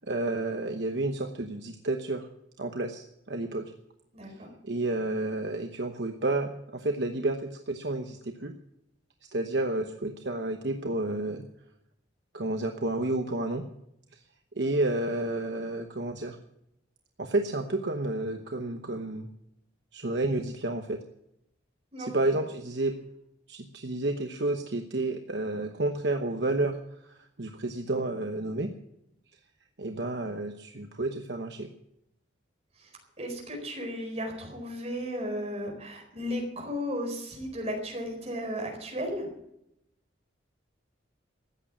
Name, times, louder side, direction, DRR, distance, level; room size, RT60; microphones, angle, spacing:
voice 1, 0.0-2.3 2.6-3.7 4.6-8.5 9.3-11.4 12.3-13.6 14.1-14.2 14.6-16.4 17.2-19.3 19.9-21.0 22.0-22.9 23.5-26.8 27.4-28.7 29.8-31.7, right 2 dB, 60° right, 5 dB, 1.0 m, -30 dB
voice 2, 4.1-4.5 21.9-22.3 32.8-32.9 33.2-39.3, equal, 35° right, 2 dB, 4.4 m, -35 dB
14.5 x 8.9 x 8.6 m, 0.80 s
head